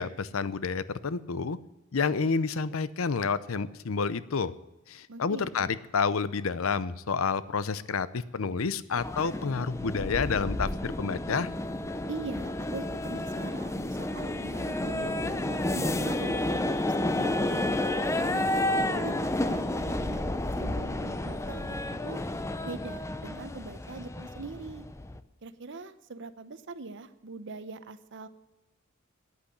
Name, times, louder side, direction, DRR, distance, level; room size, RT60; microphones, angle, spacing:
voice 1, 0.0-1.6 1.9-4.5 4.9-5.7 5.9-11.5, left 5 dB, 75° left, 16 dB, 0.6 m, -29 dB
voice 2, 5.1-5.7 12.1-17.7 18.2-22.2 22.6-24.8 25.4-28.3, right 3 dB, 60° right, 12 dB, 0.8 m, -42 dB
sound 1, 9.0-25.2, left 1 dB, 15° left, 0.6 m, -31 dB
10.5 x 8.4 x 9.9 m, 1.0 s
head